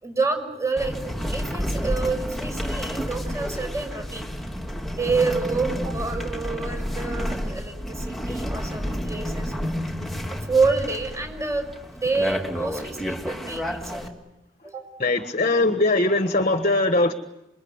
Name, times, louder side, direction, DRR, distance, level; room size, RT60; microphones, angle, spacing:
voice 1, 0.0-4.3 4.9-9.5 10.3-14.1 14.6-14.9, right 4 dB, 15° right, 6 dB, 6.0 m, -28 dB
sound 1, 0.8-14.1, equal, ahead, 3.0 m, -30 dB
voice 2, 15.0-17.1, left 2 dB, 40° left, 8 dB, 1.5 m, -21 dB
27.0 x 22.5 x 9.7 m, 0.97 s
head